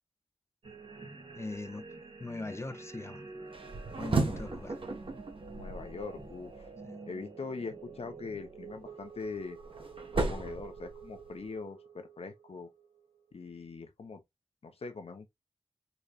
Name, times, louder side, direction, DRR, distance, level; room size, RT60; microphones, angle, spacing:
sound 1, 0.6-13.4, right 4 dB, 80° right, 2.0 m, -49 dB
voice 1, 1.3-1.9 2.2-3.3 4.0-4.8 6.8-7.0, left 2 dB, 25° left, 0.5 m, -40 dB
sound 2, 3.5-6.7 8.9-11.4, right 3 dB, 60° right, 1.1 m, -35 dB
voice 2, 5.5-6.7 7.1-9.6 10.1-12.7 13.3-14.2 14.6-15.4, left 4 dB, 75° left, 1.0 m, -42 dB
4.1 x 3.1 x 2.4 m
wide cardioid pair, 85°, 10 cm